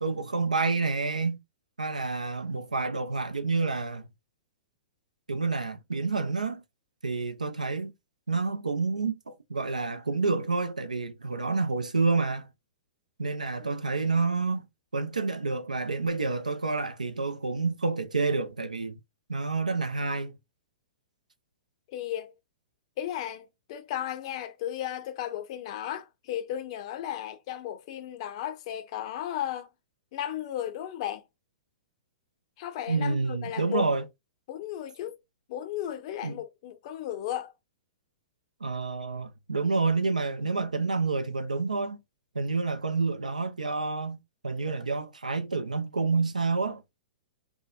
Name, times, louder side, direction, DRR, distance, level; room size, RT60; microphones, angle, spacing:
voice 1, 0.0-1.4 1.8-4.1 5.3-6.6 7.0-7.9 8.3-12.5 13.2-14.7 14.9-19.0 19.3-20.3 32.9-34.0 36.2-36.4 38.6-42.0 42.3-46.8, right 4 dB, 85° right, 0.4 m, -28 dB
voice 2, 21.9-22.3 23.0-29.7 30.1-31.2 32.6-33.8 34.5-35.2 35.5-37.5, left 11 dB, 45° left, 0.5 m, -35 dB
2.7 x 2.2 x 2.2 m
figure-of-eight pair, 110°, 4 cm